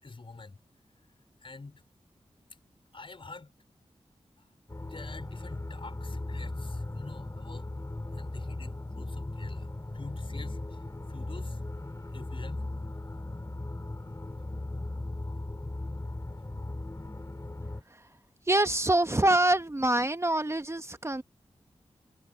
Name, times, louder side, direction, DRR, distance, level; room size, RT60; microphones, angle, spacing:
voice 1, 0.0-0.6 1.4-1.8 2.9-3.5 4.4-4.5 4.8-7.7 8.1-10.8 11.1-11.6 12.1-12.7 17.2-17.3, left 3 dB, 55° left, 4.8 m, -46 dB
sound 1, 4.7-17.8, left 2 dB, 30° left, 3.8 m, -37 dB
voice 2, 18.5-21.2, right 1 dB, 25° right, 1.1 m, -25 dB
cardioid pair, 50°, 11 cm